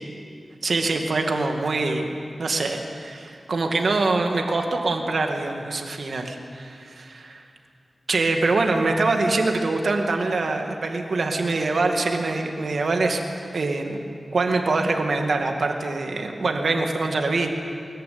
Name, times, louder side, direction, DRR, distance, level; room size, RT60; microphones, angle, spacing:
voice 1, 0.6-7.4 8.1-13.2 13.5-14.0 14.3-17.5, right 3 dB, 75° right, 3 dB, 2.2 m, -24 dB
23.5 x 14.0 x 9.6 m, 2.4 s
wide cardioid pair, 65°, 0 cm